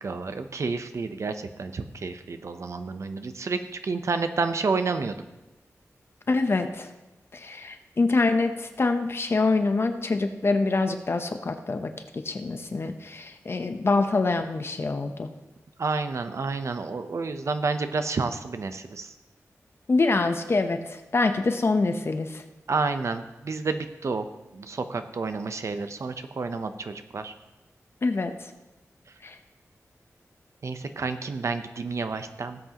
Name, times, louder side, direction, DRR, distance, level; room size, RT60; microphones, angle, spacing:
voice 1, 0.0-5.2 15.8-19.1 22.7-24.3 24.5-27.3 30.6-32.6, right 4 dB, 60° right, 9 dB, 0.7 m, -30 dB
voice 2, 6.3-6.9 7.4-11.9 12.2-15.3 19.9-22.4 28.0-28.3 29.2-29.3, left 3 dB, 50° left, 7 dB, 0.8 m, -25 dB
17.5 x 8.1 x 2.9 m, 1.0 s
wide cardioid pair, 110°, 6 cm